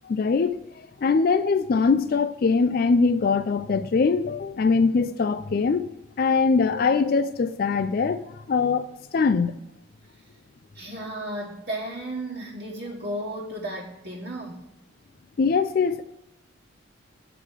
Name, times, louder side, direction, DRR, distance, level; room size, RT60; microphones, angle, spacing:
voice 1, 0.0-5.9 6.2-9.6 15.4-16.0, left 4 dB, 45° left, 0.3 m, -22 dB
voice 2, 10.7-14.6, right 1 dB, 45° right, 1.3 m, -34 dB
8.1 x 4.9 x 7.2 m
head